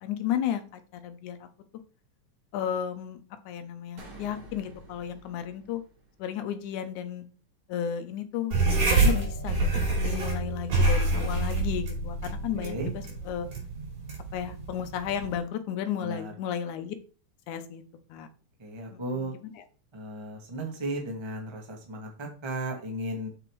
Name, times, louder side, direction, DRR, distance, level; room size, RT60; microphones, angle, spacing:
voice 1, 0.0-1.5 2.5-3.2 3.5-5.8 6.2-7.3 7.7-8.6 8.9-12.8 13.3-13.5 14.3-17.0 17.5-17.8 18.1-18.3 18.9-19.3, left 9 dB, 75° left, 9 dB, 2.3 m, -33 dB
sound 1, 4.0-6.5, right 2 dB, 45° right, 2.5 m, -49 dB
sound 2, 8.5-15.4, right 2 dB, 60° right, 4.5 m, -27 dB
voice 2, 12.6-12.9 16.0-16.3 18.6-19.3 19.9-23.3, right 1 dB, 15° right, 1 dB, 0.9 m, -35 dB
6.8 x 5.9 x 4.6 m, 0.38 s
omnidirectional pair, 3.6 m